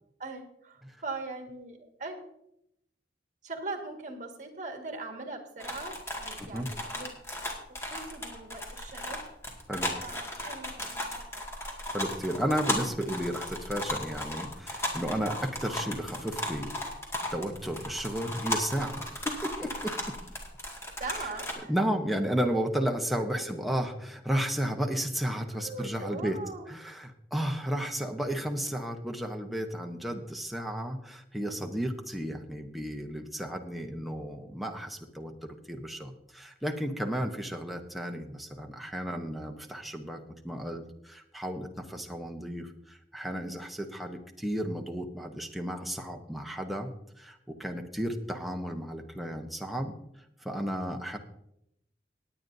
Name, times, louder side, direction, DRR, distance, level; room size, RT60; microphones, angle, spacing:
voice 1, 0.2-2.2 3.4-7.1 7.7-9.2 10.0-11.4 21.0-21.7 23.4-23.5 25.5-26.7, right 3 dB, 45° right, 3 dB, 1.8 m, -41 dB
sound 1, 5.6-21.5, left 1 dB, 15° left, 2.0 m, -36 dB
voice 2, 11.9-16.7 17.3-20.1 21.2-21.3 21.7-26.4 26.7-46.9 47.2-50.0 50.4-51.2, equal, ahead, 3 dB, 0.9 m, -33 dB
19.0 x 9.2 x 2.7 m, 0.79 s
head